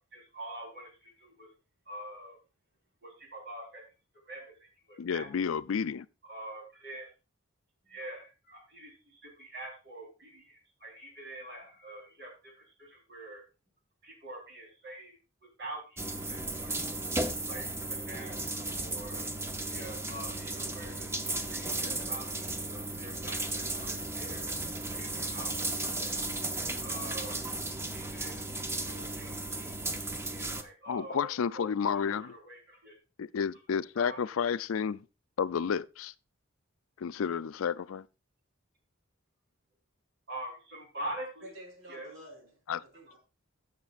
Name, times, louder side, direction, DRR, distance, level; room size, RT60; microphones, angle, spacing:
voice 1, 0.0-1.5 1.9-2.4 3.0-3.8 4.3-5.3 6.2-7.1 7.9-13.4 14.0-16.8 17.5-19.3 19.7-24.4 25.0-26.2 26.8-27.5 27.9-29.9 30.2-32.9 34.0-34.2 40.3-41.5 41.9-42.1 43.1-43.2, right 1 dB, 55° right, 3.9 m, -45 dB
voice 2, 5.0-6.1 30.9-32.3 33.2-35.0 35.4-36.1 37.0-38.0 42.7-42.8, left 6 dB, 80° left, 0.4 m, -31 dB
sound 1, 16.0-30.6, right 2 dB, 15° right, 0.7 m, -35 dB
voice 3, 41.4-43.2, right 1 dB, 85° right, 3.6 m, -50 dB
16.5 x 6.7 x 2.4 m
head